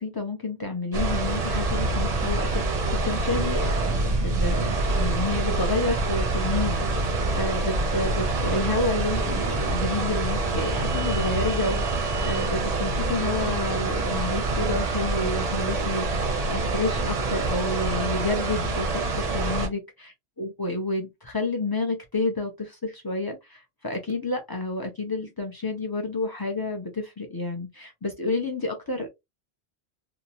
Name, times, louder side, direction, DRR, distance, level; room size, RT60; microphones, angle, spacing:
voice 1, 0.0-19.8 20.4-29.1, left 2 dB, 30° left, 0.4 m, -30 dB
sound 1, 0.9-19.7, right 2 dB, 45° right, 0.6 m, -26 dB
2.7 x 2.0 x 2.7 m
omnidirectional pair, 1.1 m